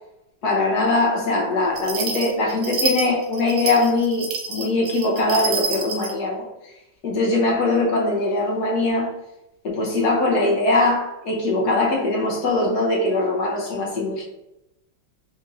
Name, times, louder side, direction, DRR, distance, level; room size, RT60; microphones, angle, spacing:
voice 1, 0.4-6.4 7.0-9.1 9.6-14.3, left 2 dB, 55° left, -1 dB, 1.3 m, -21 dB
sound 1, 1.7-6.1, right 4 dB, 75° right, 1.5 m, -28 dB
4.2 x 2.7 x 3.7 m, 0.88 s
omnidirectional pair, 2.4 m